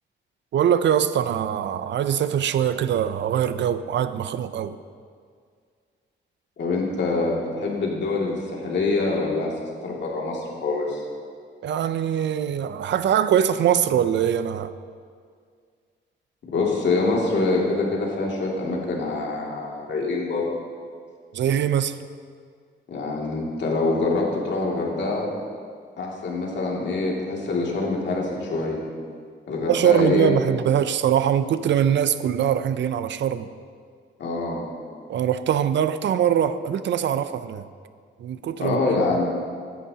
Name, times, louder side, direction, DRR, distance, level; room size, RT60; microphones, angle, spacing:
voice 1, 0.5-4.8 11.6-14.7 21.3-22.0 29.7-33.5 35.1-37.6 38.2-39.2, right 9 dB, 65° right, 12 dB, 0.5 m, -22 dB
voice 2, 6.6-9.5 9.8-11.0 16.5-20.5 22.9-25.3 26.0-28.8 29.5-30.3 34.2-34.7 38.6-39.3, left 3 dB, 65° left, -3 dB, 2.4 m, -25 dB
16.0 x 11.0 x 2.8 m, 2.1 s
cardioid pair, 120°, 20 cm